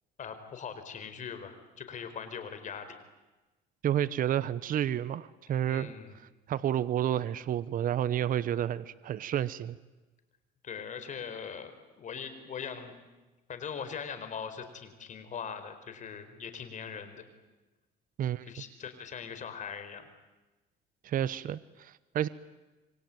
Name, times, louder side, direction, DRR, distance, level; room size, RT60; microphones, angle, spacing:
voice 1, 0.2-3.0 5.7-6.2 10.6-11.7 12.0-12.9 13.5-17.2 18.4-20.0, left 7 dB, 45° left, 9 dB, 4.6 m, -41 dB
voice 2, 3.8-5.9 6.5-9.8 18.2-18.5 21.0-22.3, right 10 dB, 55° right, 16 dB, 1.0 m, -30 dB
27.0 x 24.0 x 9.2 m, 1.1 s
cardioid pair, 110°, 17 cm